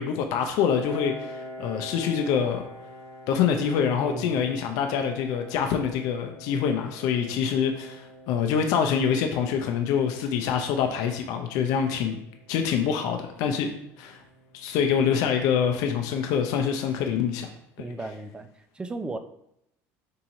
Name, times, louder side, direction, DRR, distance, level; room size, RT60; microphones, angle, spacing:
voice 1, 0.0-2.6 3.3-12.2 12.5-13.7 14.0-14.2 14.5-17.5, left 7 dB, 70° left, 4 dB, 0.5 m, -25 dB
Piano, 0.8-16.2, equal, 50° right, 1.1 m, -46 dB
voice 2, 4.0-4.4 17.8-18.5 18.7-19.2, right 2 dB, 15° right, 8 dB, 0.4 m, -35 dB
3.6 x 2.9 x 4.0 m, 0.78 s
supercardioid pair, 110°, 6 cm